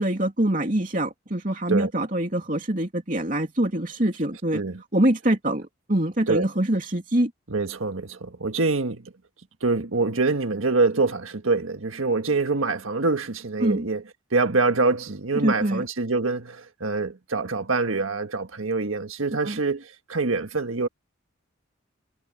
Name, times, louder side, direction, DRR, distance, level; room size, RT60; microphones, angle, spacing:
voice 1, 0.0-4.6 4.9-7.3 13.6-13.8 15.3-15.8 19.4-19.6, right 1 dB, 40° right, 2.9 m, -24 dB
voice 2, 7.5-9.1 9.6-14.0 14.3-20.9, right 3 dB, 90° right, 1.6 m, -25 dB
head